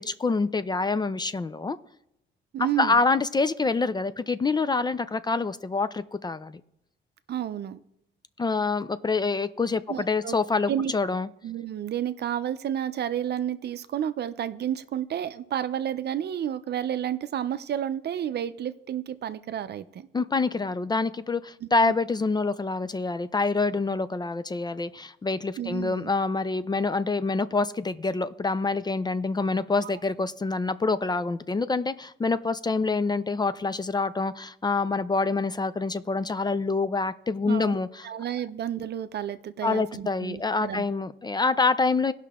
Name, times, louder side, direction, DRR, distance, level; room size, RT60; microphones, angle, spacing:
voice 1, 0.0-1.8 2.6-6.6 8.4-11.3 20.1-38.1 39.6-42.1, left 3 dB, 20° left, 13 dB, 0.4 m, -26 dB
voice 2, 2.5-3.0 7.3-7.8 9.9-10.4 10.7-10.9 11.4-20.1 21.6-22.0 25.6-26.1 29.8-29.9 37.5-40.8, right 10 dB, 55° right, 12 dB, 0.6 m, -31 dB
17.0 x 5.8 x 3.6 m, 0.80 s
cardioid pair, 90°, 20 cm